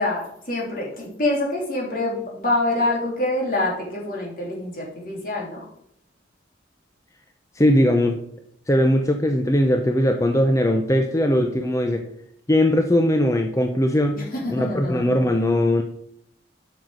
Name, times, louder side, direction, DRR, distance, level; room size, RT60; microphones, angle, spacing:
voice 1, 0.0-5.6 14.2-15.0, left 2 dB, 45° left, -3 dB, 3.0 m, -26 dB
voice 2, 7.6-8.2 8.7-12.0 12.5-14.2 14.5-15.8, left 1 dB, 15° left, 4 dB, 0.6 m, -20 dB
7.9 x 6.4 x 5.1 m, 0.69 s
head